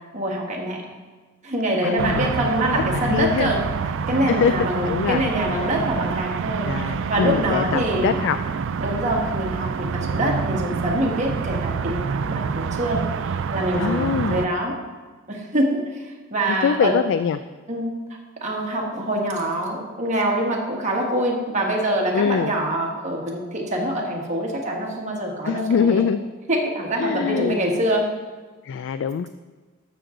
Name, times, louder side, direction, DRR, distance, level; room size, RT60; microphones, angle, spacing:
voice 1, 0.1-0.8 1.4-3.6 4.1-6.7 7.1-8.2 8.8-14.7 15.3-16.9 17.7-17.9 18.4-26.0 26.5-28.0, right 1 dB, 35° right, -1 dB, 1.7 m, -25 dB
voice 2, 1.8-2.2 2.7-3.5 4.3-5.3 6.6-8.4 13.7-14.5 16.6-17.4 22.1-22.5 25.4-26.2 27.0-27.6 28.6-29.3, left 6 dB, 60° left, 12 dB, 0.3 m, -23 dB
sound 1, 2.0-14.5, right 5 dB, 60° right, 0.4 m, -27 dB
13.5 x 6.3 x 3.8 m, 1.3 s
head